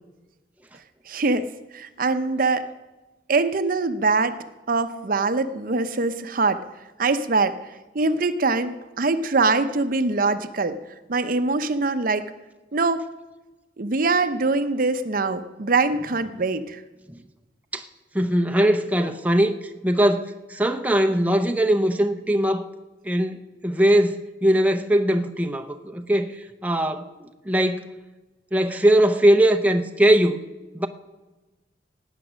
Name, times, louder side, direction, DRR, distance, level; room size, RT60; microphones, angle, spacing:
voice 1, 1.1-1.5 1.7-2.6 3.3-6.6 7.0-7.6 7.9-10.8 11.1-12.3 12.7-13.0 13.8-16.8, right 3 dB, 50° right, 0.7 m, -23 dB
voice 2, 18.1-22.7 23.0-27.9 28.5-30.4 30.7-30.9, right 1 dB, 10° right, 0.6 m, -21 dB
17.5 x 9.1 x 6.2 m
head